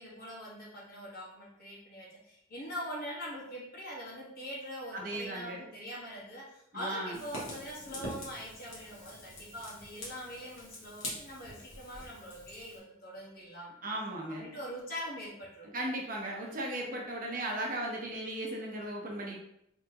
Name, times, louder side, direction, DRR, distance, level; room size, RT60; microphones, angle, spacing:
voice 1, 0.0-13.7 14.3-15.7, equal, 50° left, -5 dB, 1.6 m, -43 dB
voice 2, 4.9-5.6 6.7-7.2 13.8-14.4 15.7-19.4, right 1 dB, 45° right, -1 dB, 1.0 m, -36 dB
Fire, 7.1-12.8, left 1 dB, 80° left, 1.7 m, -45 dB
4.2 x 3.5 x 3.0 m, 0.75 s
head